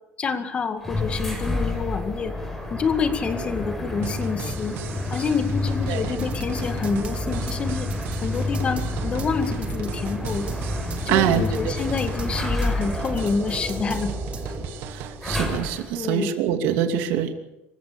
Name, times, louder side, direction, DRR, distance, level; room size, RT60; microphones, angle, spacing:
voice 1, 0.2-2.3 2.7-4.8 5.1-7.9 8.2-10.5 11.1-14.1 14.4-14.5 15.9-16.3, left 5 dB, 30° left, 7 dB, 2.1 m, -27 dB
sound 1, 0.8-16.0, left 2 dB, 5° left, 5.7 m, -30 dB
sound 2, 4.0-15.7, right 11 dB, 65° right, 1.7 m, -39 dB
sound 3, 6.1-14.7, right 3 dB, 30° right, 2.5 m, -35 dB
voice 2, 11.1-11.7 14.9-17.3, right 9 dB, 80° right, 5 dB, 2.7 m, -24 dB
27.0 x 16.0 x 6.9 m, 0.93 s
cardioid pair, 150°, 4 cm